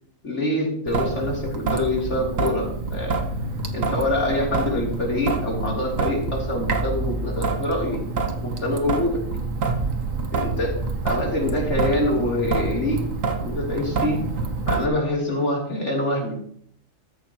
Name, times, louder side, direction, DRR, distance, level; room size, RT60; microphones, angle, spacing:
voice 1, 0.2-3.2 3.7-8.0 8.4-9.2 10.3-10.8 11.0-13.0 13.4-14.2 14.7-16.3, left 1 dB, 60° left, -2 dB, 3.7 m, -25 dB
Traffic noise roadway noise / Drip / Trickle dribble, 0.9-14.9, right 3 dB, 75° right, 1.6 m, -27 dB
14.0 x 13.5 x 3.0 m, 0.62 s
omnidirectional pair, 1.4 m